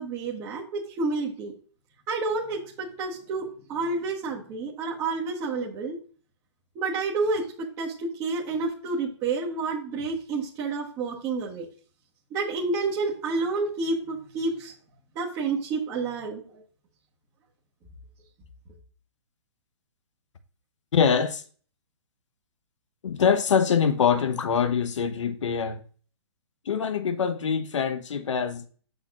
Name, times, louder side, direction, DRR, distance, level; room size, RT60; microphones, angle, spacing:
voice 1, 0.0-1.5 2.1-6.0 6.7-11.7 12.3-14.7 15.1-16.6, right 3 dB, 20° right, 1.2 m, -29 dB
voice 2, 20.9-21.4 23.0-25.8 26.7-28.7, left 7 dB, 80° left, 0.9 m, -24 dB
7.4 x 6.5 x 2.5 m
hypercardioid pair, 160°, 15 cm